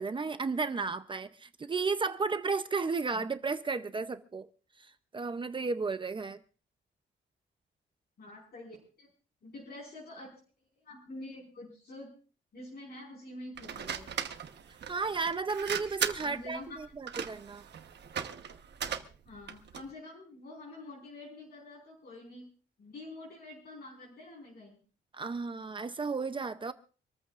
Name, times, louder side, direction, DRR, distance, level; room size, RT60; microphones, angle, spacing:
voice 1, 0.0-4.5 4.8-6.4 14.9-17.6 25.1-26.7, right 4 dB, 25° right, 0.6 m, -33 dB
voice 2, 8.2-9.1 9.4-10.4 10.8-12.1 12.5-14.1 16.2-16.8 19.2-22.5 22.8-24.8, left 2 dB, 55° left, 5.1 m, -47 dB
sound 1, 13.6-19.9, right 8 dB, 60° right, 1.1 m, -38 dB
26.5 x 14.0 x 2.5 m
wide cardioid pair, 170°, 20 cm